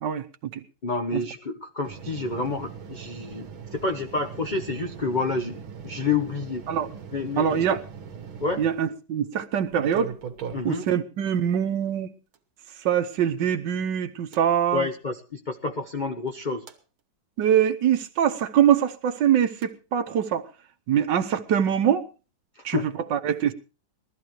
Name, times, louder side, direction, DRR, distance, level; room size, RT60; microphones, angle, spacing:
voice 1, 0.0-0.6 1.1-1.2 6.7-6.9 7.4-7.8 8.6-10.1 10.6-12.1 12.8-14.9 17.4-20.5 20.9-22.1 22.6-23.5, right 9 dB, 65° right, 1.5 m, -23 dB
voice 2, 0.8-6.6 7.1-7.6 8.4-8.6 10.5-10.9 14.7-16.7 22.5-22.9, left 4 dB, 40° left, 0.7 m, -29 dB
sound 1, 1.8-8.9 9.7-10.9 12.3-12.4 14.3-14.4 16.3-16.8 19.6-19.7, right 7 dB, 85° right, 2.1 m, -40 dB
20.5 x 14.0 x 3.1 m
omnidirectional pair, 2.2 m